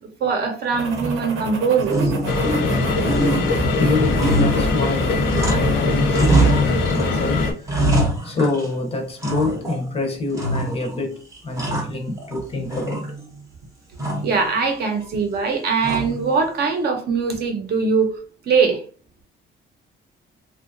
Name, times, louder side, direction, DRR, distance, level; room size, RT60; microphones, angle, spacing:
voice 1, 0.0-2.1 14.2-18.2 18.4-18.8, right 5 dB, 55° right, 0.6 m, -21 dB
sound 1, 0.7-6.5, right 3 dB, 85° right, 0.7 m, -33 dB
sound 2, 0.9-1.5 1.8-2.8 3.1-5.8 6.1-7.1 7.4-8.8 9.2-9.9 10.3-11.0 11.3-12.4 12.7-13.4 14.0-14.4 15.8-16.3, right 2 dB, 15° right, 0.6 m, -24 dB
sound 3, 2.3-7.5, left 3 dB, 70° left, 0.7 m, -21 dB
voice 2, 3.8-7.9 8.2-13.2, left 3 dB, 30° left, 0.6 m, -26 dB
2.7 x 2.3 x 2.5 m
cardioid pair, 175°, 20 cm